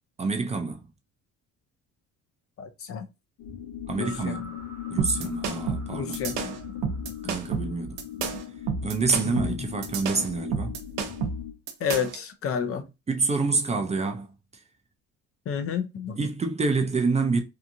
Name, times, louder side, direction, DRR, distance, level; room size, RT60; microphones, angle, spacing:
voice 1, 0.2-0.9 3.9-4.5 4.9-6.2 7.2-8.0 8.8-10.8 13.1-14.3 16.2-17.4, right 4 dB, 20° right, 0.4 m, -27 dB
voice 2, 2.6-3.1 4.0-4.3 5.9-6.4 9.3-9.6 11.8-12.8 15.5-16.2, left 7 dB, 45° left, 0.5 m, -30 dB
sound 1, 3.4-11.5, left 9 dB, 80° left, 0.8 m, -38 dB
sound 2, 5.0-12.2, right 6 dB, 80° right, 0.8 m, -30 dB
2.7 x 2.4 x 2.6 m
cardioid pair, 115°, 31 cm